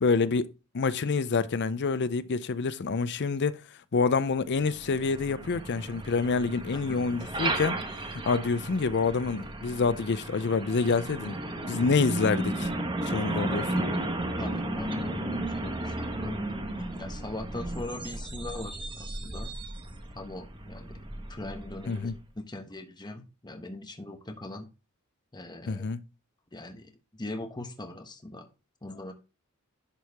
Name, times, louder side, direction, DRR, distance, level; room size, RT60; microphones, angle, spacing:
voice 1, 0.0-3.6 3.9-7.8 8.1-11.4 11.7-12.7 13.0-13.7 21.9-22.1 25.7-26.0, left 4 dB, 50° left, 0.5 m, -27 dB
Truck, 4.5-22.2, right 1 dB, 25° right, 1.1 m, -34 dB
voice 2, 6.7-7.0 14.4-16.6 16.9-19.5 20.1-21.0 21.3-24.7 25.3-25.9 26.5-28.5 28.8-29.1, left 2 dB, 20° left, 1.0 m, -41 dB
11.0 x 4.7 x 3.5 m
head